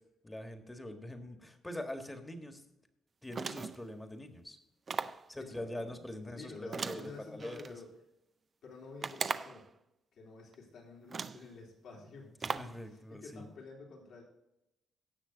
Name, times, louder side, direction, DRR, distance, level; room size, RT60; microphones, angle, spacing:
voice 1, 0.2-2.6 3.2-4.6 5.0-7.7 12.4-13.5, left 1 dB, 15° left, 6 dB, 1.6 m, -44 dB
sound 1, 3.3-3.9 4.9-5.3 6.7-7.7 9.0-9.7 10.5-10.6 11.1-11.5 12.4-12.8, right 5 dB, 40° right, 0.5 m, -38 dB
voice 2, 5.3-7.9 8.6-9.7 10.1-12.4 12.9-14.2, left 3 dB, 70° left, -2 dB, 3.6 m, -50 dB
16.5 x 6.4 x 3.9 m, 0.87 s
cardioid pair, 90°, 0 cm